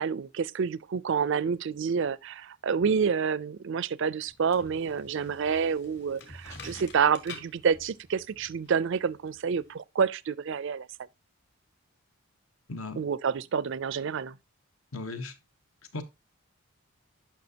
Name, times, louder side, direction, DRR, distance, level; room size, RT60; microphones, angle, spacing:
voice 1, 0.0-10.9 13.0-14.3, right 6 dB, 55° right, 0.4 m, -28 dB
sound 1, 4.3-9.7, left 3 dB, 50° left, 2.1 m, -49 dB
voice 2, 12.7-13.0 14.9-15.3 15.9-16.0, left 3 dB, 70° left, 1.2 m, -36 dB
10.5 x 5.8 x 2.8 m
head